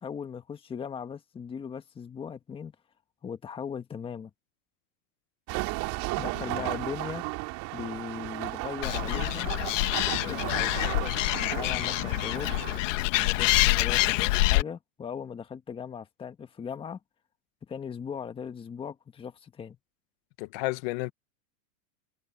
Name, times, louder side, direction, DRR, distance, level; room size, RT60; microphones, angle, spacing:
voice 1, 0.0-2.7 3.2-4.3 6.2-7.2 7.7-9.5 10.2-10.8 11.4-12.6 13.1-17.0 17.7-19.8, left 7 dB, 15° left, 1.4 m, -38 dB
sound 1, 5.5-12.8, right 24 dB, 45° right, 4.3 m, -35 dB
voice 2, 6.3-6.7 20.4-21.1, left 22 dB, 45° left, 1.5 m, -33 dB
Animal, 8.8-14.6, left 19 dB, 70° left, 2.2 m, -26 dB
supercardioid pair, 155°, 40 cm